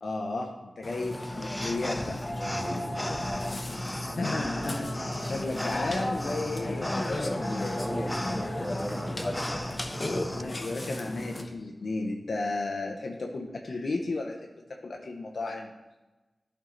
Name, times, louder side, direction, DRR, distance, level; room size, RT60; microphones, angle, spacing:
voice 1, 0.0-2.2 4.0-8.0 10.3-15.7, left 2 dB, 65° left, 1 dB, 0.6 m, -34 dB
Burping eructation, 0.8-11.4, left 1 dB, 30° left, 0.8 m, -34 dB
sound 1, 1.1-10.4, left 1 dB, 10° left, 0.3 m, -38 dB
sound 2, 2.4-11.1, right 1 dB, 35° right, 2.6 m, -49 dB
voice 2, 2.5-3.2 7.7-9.6, equal, 10° right, -3 dB, 2.0 m, -37 dB
11.0 x 4.6 x 3.9 m, 1.1 s
wide cardioid pair, 95°, 0 cm